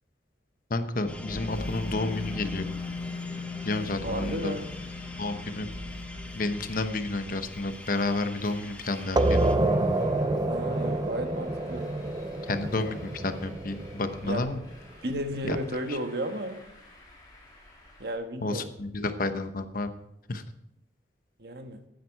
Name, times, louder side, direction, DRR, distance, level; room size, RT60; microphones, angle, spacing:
voice 1, 0.7-2.7 3.6-4.6 5.2-5.7 6.3-9.2 12.5-14.6 15.4-15.6 18.4-19.9 20.3-20.4, left 2 dB, 50° left, 9 dB, 0.9 m, -30 dB
sound 1, 1.1-9.6, left 3 dB, 5° left, 1.0 m, -38 dB
Traffic noise roadway noise, 1.4-18.1, left 1 dB, 25° left, 3.7 m, -51 dB
voice 2, 4.0-4.7 10.4-11.9 14.2-14.4 15.0-16.6 18.0-18.7 21.4-21.8, right 1 dB, 60° right, 6 dB, 1.4 m, -33 dB
sound 2, 9.2-14.5, right 2 dB, 20° right, 0.5 m, -27 dB
14.0 x 9.4 x 4.6 m, 0.77 s
head